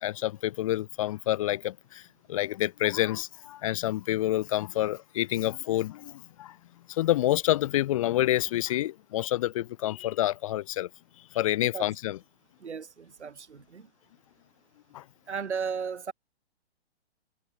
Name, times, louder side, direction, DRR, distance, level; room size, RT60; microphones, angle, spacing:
voice 1, 0.0-2.0 2.3-6.6 6.9-10.9 11.3-12.2 14.9-15.0, left 14 dB, 30° left, 0.4 m, -28 dB
voice 2, 12.6-13.9 15.3-16.1, right 6 dB, 85° right, 1.4 m, -35 dB
figure-of-eight pair, 125°, 33 cm